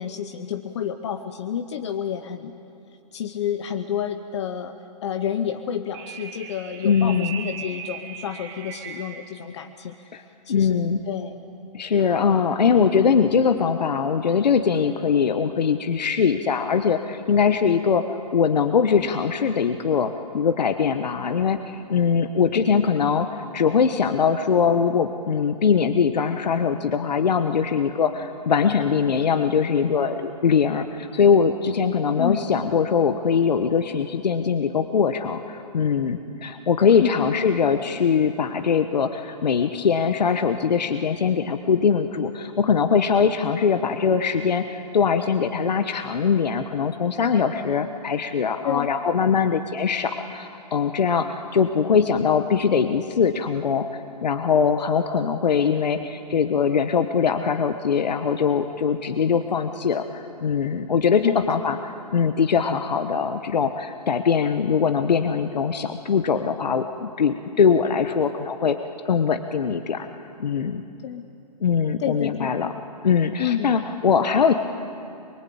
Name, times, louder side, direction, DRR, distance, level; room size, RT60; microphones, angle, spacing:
voice 1, 0.0-2.6 3.1-4.8 5.0-11.4 22.5-22.8 32.2-32.5 37.0-37.3 48.6-48.9 61.2-61.4 71.0-71.2 72.0-72.7 73.4-73.8, left 9 dB, 45° left, 7 dB, 0.9 m, -29 dB
sound 1, 5.9-9.4, right 7 dB, 30° right, 1.3 m, -38 dB
voice 2, 6.8-7.4 10.1-10.2 10.5-11.0 11.7-18.0 18.3-23.3 23.5-53.9 54.2-61.8 62.1-68.8 69.0-70.1 70.4-70.8 71.6-72.7 73.0-74.5, left 6 dB, 85° left, 8 dB, 1.1 m, -22 dB
23.5 x 23.0 x 8.6 m, 2.7 s
hypercardioid pair, 155°, 21 cm